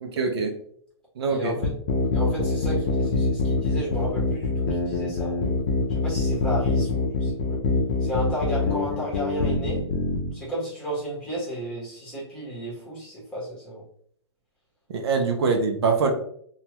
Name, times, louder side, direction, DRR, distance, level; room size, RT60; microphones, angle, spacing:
voice 1, 0.0-0.6 1.2-1.6 14.9-16.1, right 4 dB, 60° right, 4 dB, 0.7 m, -24 dB
voice 2, 1.3-1.8 2.1-5.4 5.9-7.6 8.0-9.8 10.3-13.8, equal, 5° left, -7 dB, 1.3 m, -33 dB
sound 1, 1.6-10.3, left 3 dB, 45° left, 0.6 m, -24 dB
2.7 x 2.4 x 3.0 m, 0.64 s
hypercardioid pair, 145°, 15 cm